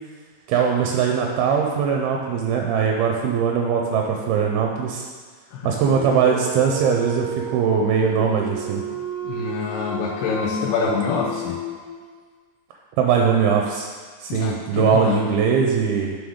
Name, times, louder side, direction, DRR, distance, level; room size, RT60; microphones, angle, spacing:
voice 1, 0.5-5.0 5.6-8.8 13.0-13.9 14.2-16.2, right 6 dB, 85° right, 1 dB, 2.3 m, -21 dB
voice 2, 5.5-6.3 9.2-11.6 14.3-15.2, left 5 dB, 85° left, -6 dB, 2.7 m, -26 dB
Dog, 5.8-12.2, right 1 dB, 65° left, 2.7 m, -32 dB
11.0 x 3.7 x 3.6 m, 1.5 s
omnidirectional pair, 4.7 m